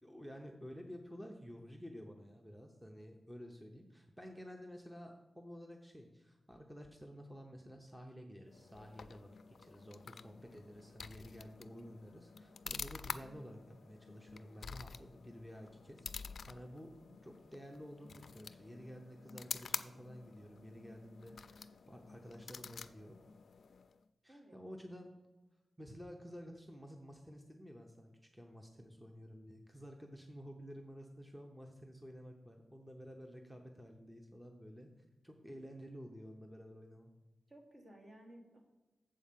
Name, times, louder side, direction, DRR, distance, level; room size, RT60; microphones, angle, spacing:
voice 1, 0.0-16.9 17.2-23.2 24.2-25.1 25.8-34.9 35.2-37.1, equal, 5° right, 2 dB, 0.8 m, -52 dB
sound 1, 8.5-24.0, left 5 dB, 75° left, 0.3 m, -49 dB
voice 2, 37.5-38.6, right 1 dB, 50° right, 0 dB, 2.0 m, -57 dB
7.4 x 4.9 x 7.2 m, 1.1 s
wide cardioid pair, 120°, 0 cm